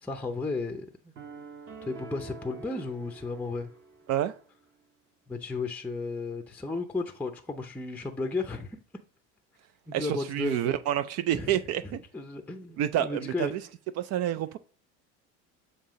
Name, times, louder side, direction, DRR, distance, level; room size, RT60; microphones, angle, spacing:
voice 1, 0.0-1.1 1.8-3.7 5.3-8.8 9.9-10.8 11.3-13.5, left 3 dB, 5° left, 0.6 m, -34 dB
sound 1, 1.1-4.4, right 4 dB, 40° right, 1.2 m, -46 dB
voice 2, 9.9-12.0 12.8-13.6 14.0-14.6, right 11 dB, 55° right, 0.5 m, -28 dB
7.3 x 2.8 x 5.0 m
cardioid pair, 115°, 29 cm